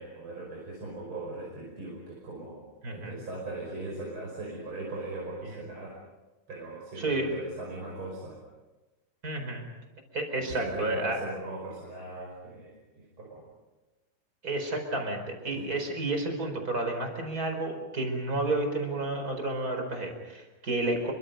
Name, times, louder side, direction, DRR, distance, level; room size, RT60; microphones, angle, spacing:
voice 1, 0.0-6.0 6.5-8.4 10.4-13.5 15.5-15.6, right 2 dB, 70° right, -3 dB, 6.3 m, -39 dB
voice 2, 2.8-3.1 5.4-5.6 7.0-7.3 9.2-9.7 10.1-11.2 14.4-21.1, right 2 dB, 40° right, 4 dB, 5.2 m, -31 dB
30.0 x 24.5 x 5.4 m, 1.1 s
omnidirectional pair, 2.4 m